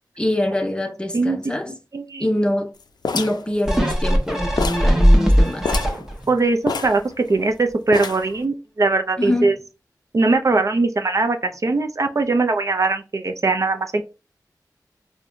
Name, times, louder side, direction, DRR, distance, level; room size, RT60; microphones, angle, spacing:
voice 1, 0.2-1.8 2.2-2.7 3.1-5.7 9.2-9.6, left 1 dB, 15° left, 0.5 m, -24 dB
voice 2, 1.9-2.2 6.3-9.6 10.1-14.0, right 3 dB, 50° right, 0.4 m, -20 dB
sound 1, 3.0-4.3 4.6-5.0 5.2-5.3 5.6-6.0 6.7-7.5 7.9-8.4, left 5 dB, 75° left, 0.4 m, -27 dB
sound 2, 3.7-6.4 6.8-6.9, equal, 5° right, 0.9 m, -18 dB
4.5 x 2.1 x 2.5 m
wide cardioid pair, 80°, 7 cm